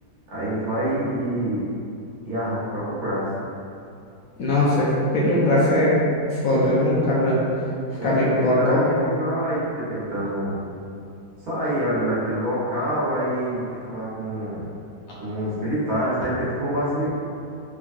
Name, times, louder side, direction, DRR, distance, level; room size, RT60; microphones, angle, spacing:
voice 1, 0.3-1.7 2.2-3.3 7.9-10.6 11.4-13.6 13.9-14.7 15.2-17.1, right 1 dB, 65° right, -9 dB, 1.3 m, -26 dB
voice 2, 4.4-5.9 6.4-7.4 8.0-8.8, left 1 dB, 65° left, -8 dB, 0.9 m, -20 dB
3.4 x 3.0 x 2.4 m, 2.5 s
omnidirectional pair, 1.8 m